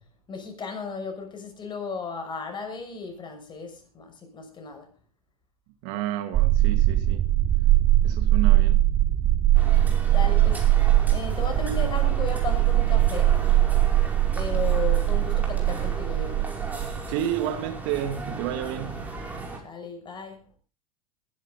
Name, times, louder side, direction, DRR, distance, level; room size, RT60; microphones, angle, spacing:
voice 1, 0.3-4.9 10.1-13.4 14.3-16.4 19.6-20.5, left 4 dB, 25° left, 6.2 m, -35 dB
voice 2, 5.8-7.2 8.0-8.8 17.1-19.1, right 11 dB, 55° right, 2.0 m, -30 dB
sound 1, 6.3-16.9, right 14 dB, 30° right, 2.4 m, -21 dB
sound 2, 9.5-19.6, right 2 dB, 10° right, 5.7 m, -36 dB
21.5 x 11.5 x 3.9 m
hypercardioid pair, 95°, 19 cm